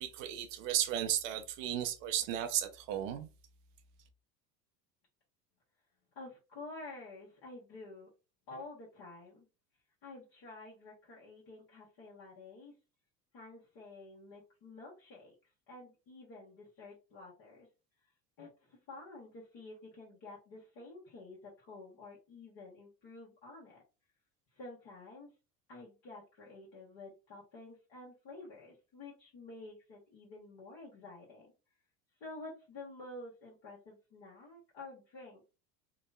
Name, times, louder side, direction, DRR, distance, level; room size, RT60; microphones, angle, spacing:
voice 1, 0.0-3.3, right 11 dB, 55° right, 0.5 m, -34 dB
voice 2, 6.1-8.1 8.5-9.4 10.0-12.7 13.3-15.3 15.7-17.7 18.4-23.8 24.5-25.3 25.7-31.5 32.2-35.6, left 2 dB, 50° left, 1.2 m, -50 dB
2.9 x 2.0 x 2.3 m
figure-of-eight pair, 70°, 49 cm